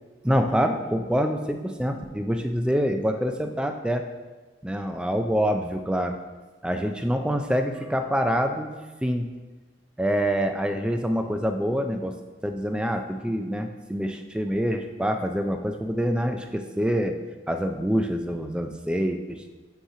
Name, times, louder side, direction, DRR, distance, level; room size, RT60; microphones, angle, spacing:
voice 1, 0.2-4.0 4.6-6.2 6.6-8.7 9.0-9.3 10.0-12.1 12.4-17.2 17.5-19.4, equal, 5° right, 5 dB, 0.3 m, -26 dB
8.1 x 2.9 x 4.8 m, 1.3 s
head